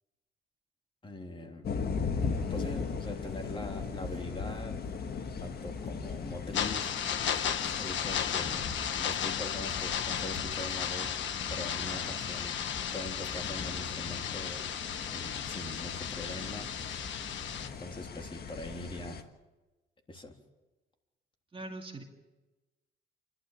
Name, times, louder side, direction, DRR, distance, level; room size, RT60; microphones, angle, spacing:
voice 1, 1.0-1.7 2.5-4.7 5.4-6.9 7.8-11.1 11.5-12.6 12.9-14.7 15.1-16.7 17.8-19.3 20.1-20.3, left 1 dB, 25° left, 3 dB, 3.4 m, -42 dB
sound 1, 1.6-19.2, left 5 dB, 55° left, 1.6 m, -39 dB
sound 2, 2.2-18.1, right 1 dB, ahead, 5.7 m, -55 dB
sound 3, 6.5-17.7, left 9 dB, 70° left, 1.5 m, -35 dB
voice 2, 21.5-22.0, right 2 dB, 25° right, 2 dB, 2.4 m, -41 dB
29.5 x 12.5 x 7.4 m, 1.1 s
cardioid pair, 90°, 20 cm